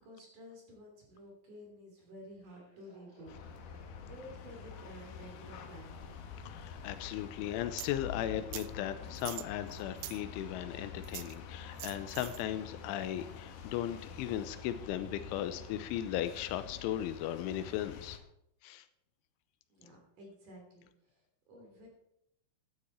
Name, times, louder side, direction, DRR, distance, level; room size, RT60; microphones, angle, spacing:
voice 1, 0.0-6.2 19.7-21.9, equal, 45° right, 1 dB, 3.9 m, -53 dB
sound 1, 2.4-10.9, equal, 10° right, 4.3 m, -59 dB
sound 2, 3.3-18.2, left 6 dB, 70° left, 2.8 m, -47 dB
voice 2, 6.5-18.2 18.6-18.9, left 11 dB, 85° left, 11 dB, 3.1 m, -37 dB
sound 3, 7.8-7.9 8.5-8.7 9.2-10.2 11.0-11.4 11.8-12.4, right 18 dB, 90° right, 2.4 m, -44 dB
13.0 x 11.0 x 4.4 m, 0.78 s
omnidirectional pair, 5.5 m